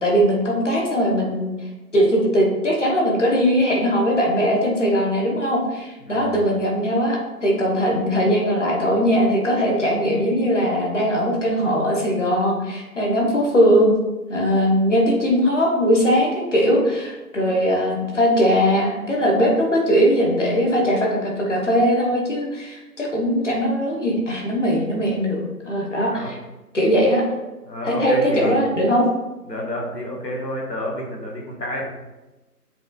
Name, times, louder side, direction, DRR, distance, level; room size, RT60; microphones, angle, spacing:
voice 1, 0.0-1.5 1.9-13.9 14.3-25.4 25.6-26.4 26.7-27.3 27.8-29.1, equal, 50° left, -1 dB, 1.0 m, -20 dB
voice 2, 6.0-6.4 26.1-26.3 27.6-28.6 29.4-31.9, equal, 85° left, -2 dB, 1.5 m, -29 dB
7.4 x 2.8 x 2.4 m, 1.1 s
figure-of-eight pair, 160°, 48 cm